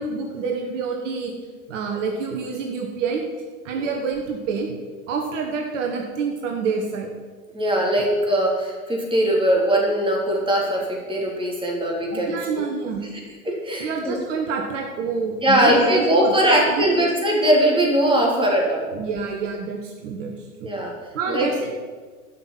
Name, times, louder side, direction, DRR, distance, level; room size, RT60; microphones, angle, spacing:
voice 1, 0.0-1.4 1.7-3.2 3.6-4.7 5.1-7.1 12.1-13.0 13.8-17.1 18.9-20.7 21.1-21.7, right 5 dB, 55° right, 2 dB, 1.7 m, -27 dB
voice 2, 7.5-10.8 11.1-12.3 13.4-14.2 15.4-18.9 20.6-20.9 21.3-21.5, right 1 dB, 10° right, -2 dB, 3.3 m, -20 dB
12.5 x 6.0 x 7.4 m, 1.5 s
hypercardioid pair, 95°, 43 cm